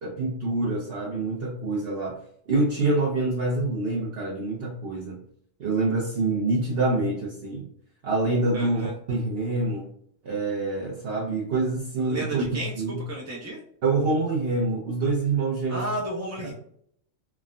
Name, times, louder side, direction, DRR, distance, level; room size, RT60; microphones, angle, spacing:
voice 1, 0.0-2.2 2.5-5.2 5.6-7.7 8.0-9.9 10.2-13.0 13.8-15.9, right 3 dB, 55° right, -3 dB, 0.8 m, -26 dB
voice 2, 8.5-8.9 12.0-13.6 15.7-16.5, right 2 dB, 25° right, -4 dB, 0.4 m, -33 dB
3.5 x 2.1 x 2.4 m, 0.67 s
omnidirectional pair, 1.3 m